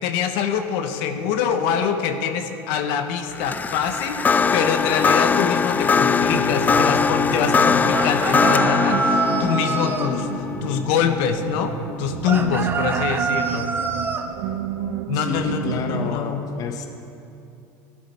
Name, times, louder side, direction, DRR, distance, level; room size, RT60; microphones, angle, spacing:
voice 1, 0.0-4.2 4.5-10.3 10.6-11.7 12.0-13.7 15.1-16.4, left 7 dB, 70° left, 7 dB, 1.0 m, -24 dB
sound 1, 3.3-12.7, left 5 dB, 20° left, 0.4 m, -21 dB
sound 2, 6.2-16.2, right 11 dB, 75° right, 0.6 m, -31 dB
sound 3, 7.9-10.1 12.2-14.3, right 4 dB, 25° right, 0.9 m, -25 dB
voice 2, 15.1-16.9, left 6 dB, 45° left, 5 dB, 0.9 m, -29 dB
16.5 x 11.0 x 4.4 m, 2.7 s
supercardioid pair, 120°, 9 cm